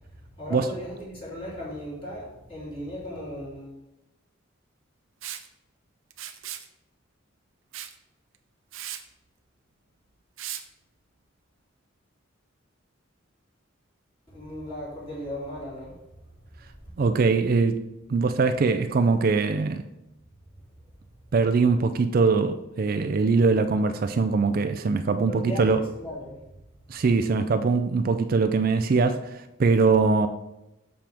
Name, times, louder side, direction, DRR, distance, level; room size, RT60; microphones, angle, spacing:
voice 1, 0.4-3.7 14.3-15.9 25.2-26.3, equal, 25° left, 3.1 m, -36 dB
Liquid, 5.2-5.5 6.1-6.7 7.7-7.9 8.3-8.4 8.7-9.0 10.4-10.6, right 11 dB, 80° right, 0.6 m, -37 dB
voice 2, 17.0-17.8 18.1-19.9 21.3-25.8 26.9-30.3, right 4 dB, 45° right, 0.4 m, -22 dB
7.5 x 7.1 x 3.5 m
head